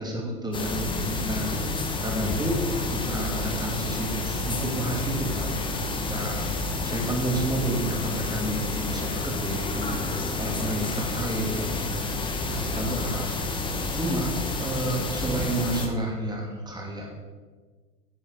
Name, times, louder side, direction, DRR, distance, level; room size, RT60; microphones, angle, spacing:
voice 1, 0.0-2.6 2.9-5.6 5.9-6.5 6.8-10.1 10.4-17.1, right 1 dB, 10° right, 0 dB, 2.1 m, -31 dB
sound 1, 0.5-15.9, left 3 dB, 10° left, 0.9 m, -30 dB
10.5 x 7.4 x 4.9 m, 1.4 s
hypercardioid pair, 110°, 49 cm